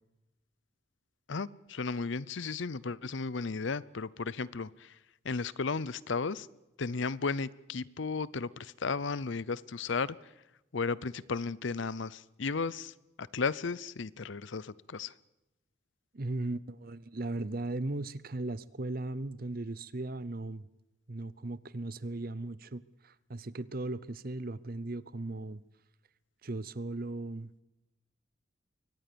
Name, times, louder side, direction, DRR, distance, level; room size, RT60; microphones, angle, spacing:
voice 1, 1.3-5.0 5.2-6.5 6.8-10.2 10.7-15.1, left 4 dB, 65° left, 0.7 m, -34 dB
voice 2, 16.1-20.7 21.1-25.6 26.4-27.5, right 2 dB, 45° right, 0.7 m, -37 dB
23.5 x 18.5 x 6.9 m
head